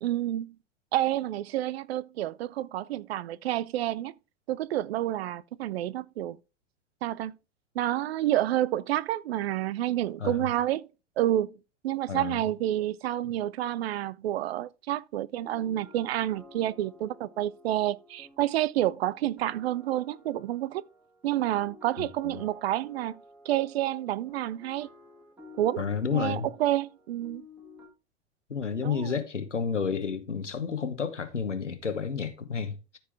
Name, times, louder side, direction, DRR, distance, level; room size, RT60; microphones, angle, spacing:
voice 1, 0.0-0.5 0.9-4.1 4.5-6.4 7.0-7.3 7.8-10.9 11.2-11.5 11.8-20.8 21.2-23.2 23.5-24.9 25.6-25.8 26.1-27.4 28.8-29.2, right 13 dB, 60° right, 0.5 m, -29 dB
voice 2, 12.1-12.4 22.0-22.4 25.8-26.5 28.5-32.8, left 6 dB, 90° left, 1.2 m, -31 dB
sound 1, 15.4-27.9, left 3 dB, 5° right, 2.1 m, -53 dB
13.5 x 4.6 x 3.4 m
figure-of-eight pair, 90°, 35 cm